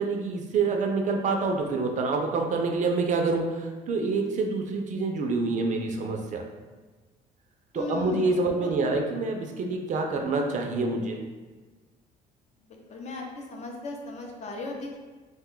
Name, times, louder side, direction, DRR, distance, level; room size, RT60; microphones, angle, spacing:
voice 1, 0.0-6.4 7.7-11.2, right 3 dB, 45° right, 3 dB, 0.4 m, -27 dB
voice 2, 7.7-8.8 12.7-15.0, left 3 dB, 40° left, 1 dB, 0.6 m, -37 dB
2.6 x 2.2 x 3.6 m, 1.3 s
cardioid pair, 110°, 17 cm